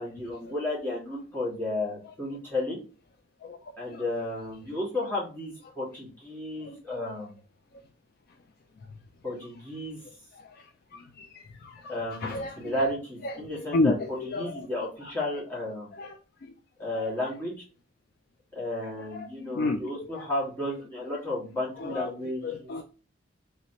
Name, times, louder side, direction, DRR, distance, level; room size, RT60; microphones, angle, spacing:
voice 1, 0.0-2.8 3.8-7.4 9.2-10.0 11.9-15.9 16.8-17.5 18.5-22.7, left 1 dB, 10° left, 1.4 m, -33 dB
voice 2, 10.9-11.3 11.6-11.9 12.2-12.7 13.2-13.9 14.3-14.5 16.0-16.2 17.0-17.1 19.4-20.2 21.8-22.1 22.4-22.8, left 2 dB, 50° left, 0.3 m, -30 dB
3.3 x 2.9 x 2.7 m
head